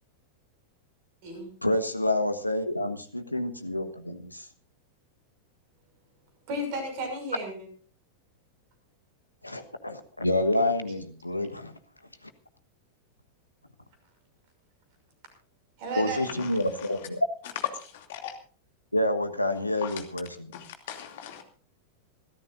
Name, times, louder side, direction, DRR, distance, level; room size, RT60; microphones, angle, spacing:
voice 1, 1.6-4.5 9.4-11.8 16.0-17.2 18.9-20.3, left 1 dB, 85° left, 1.3 m, -28 dB
voice 2, 6.5-7.5 15.8-16.5, right 1 dB, 45° right, 6.0 m, -33 dB
voice 3, 15.8-17.1 17.4-18.4 19.8-20.0 20.5-21.4, left 10 dB, 55° left, 2.7 m, -39 dB
26.5 x 13.5 x 2.6 m
figure-of-eight pair, 90°, 0 cm